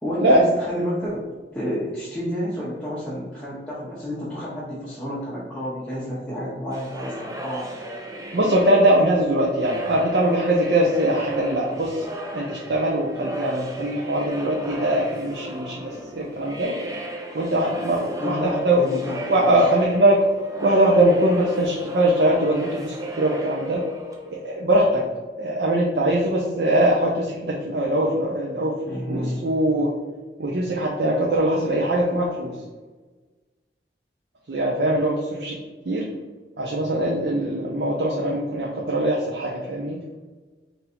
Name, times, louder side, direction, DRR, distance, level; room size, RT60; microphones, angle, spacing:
voice 1, 0.0-7.7 18.2-19.7 28.8-29.4, equal, 5° left, -11 dB, 1.0 m, -30 dB
sound 1, 6.7-24.6, equal, 20° right, 0.5 m, -35 dB
voice 2, 8.3-12.0 12.3-16.8 17.3-18.8 19.3-20.2 20.6-23.8 24.4-25.0 25.4-28.7 29.1-29.9 30.4-32.5 34.5-35.6 35.9-36.1 36.6-40.0, right 1 dB, 70° right, -2 dB, 0.6 m, -21 dB
3.9 x 2.6 x 4.2 m, 1.3 s
head